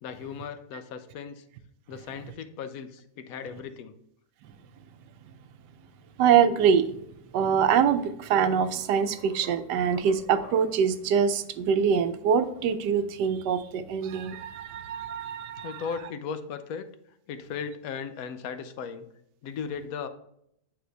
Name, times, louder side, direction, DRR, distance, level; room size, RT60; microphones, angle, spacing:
voice 1, 0.0-1.4 1.9-3.9 15.6-16.9 17.3-19.1 19.4-20.1, left 6 dB, 65° left, 9 dB, 1.0 m, -37 dB
voice 2, 6.2-6.9 7.3-15.8, right 7 dB, 90° right, 10 dB, 1.2 m, -24 dB
sound 1, 8.7-11.0, left 6 dB, 90° left, 1.4 m, -49 dB
8.6 x 3.4 x 3.3 m, 0.73 s
omnidirectional pair, 1.8 m